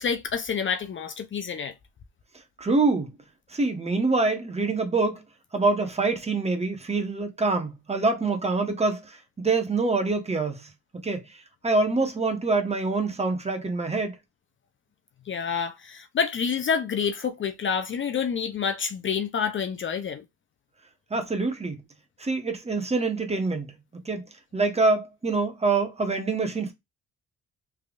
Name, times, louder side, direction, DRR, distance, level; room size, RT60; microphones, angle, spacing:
voice 1, 0.0-1.7 15.3-20.2, left 6 dB, 40° left, 0.5 m, -28 dB
voice 2, 2.6-3.1 3.5-5.2 5.5-10.6 11.0-11.2 11.6-14.1 21.1-21.8 22.2-23.7 24.0-24.2 24.5-26.7, right 3 dB, 20° right, 1.0 m, -25 dB
3.4 x 3.2 x 2.4 m
cardioid pair, 90°, 30 cm